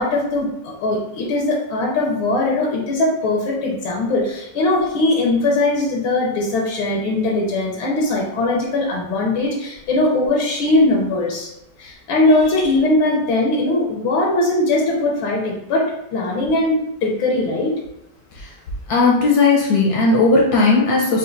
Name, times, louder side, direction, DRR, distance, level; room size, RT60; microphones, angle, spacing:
voice 1, 0.0-11.5 11.8-15.8 16.1-17.7, left 2 dB, 80° left, -2 dB, 1.5 m, -20 dB
voice 2, 18.9-21.2, left 3 dB, 65° left, -2 dB, 1.1 m, -16 dB
5.0 x 2.5 x 2.5 m, 0.80 s
omnidirectional pair, 2.2 m